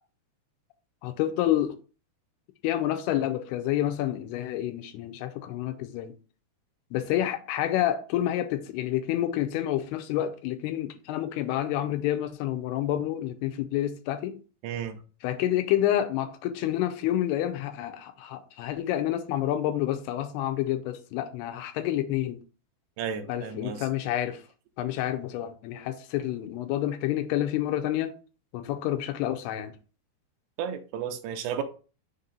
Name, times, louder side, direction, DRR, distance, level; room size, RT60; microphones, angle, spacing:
voice 1, 1.0-1.8 2.6-6.1 6.9-14.4 15.2-22.4 23.3-24.4 24.8-28.1 28.5-29.7, left 12 dB, 85° left, 2.6 m, -28 dB
voice 2, 14.6-15.0 23.0-23.9 30.6-31.6, right 8 dB, 90° right, 2.7 m, -33 dB
6.6 x 2.8 x 5.2 m
omnidirectional pair, 4.6 m